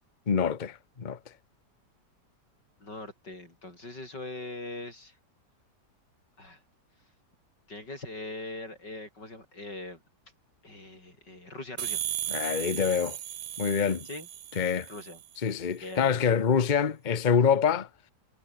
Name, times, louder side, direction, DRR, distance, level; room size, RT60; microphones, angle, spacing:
voice 1, 0.3-1.2 12.3-13.2 13.6-14.1 14.6-14.9 15.4-17.9, left 6 dB, 30° left, 1.0 m, -25 dB
voice 2, 2.8-5.2 6.4-6.6 7.7-10.0 10.6-12.0 14.1-14.3 14.9-15.2 15.8-16.4, left 2 dB, 80° left, 8.8 m, -41 dB
sound 1, 11.8-15.4, right 10 dB, 85° right, 1.7 m, -36 dB
omnidirectional pair, 1.8 m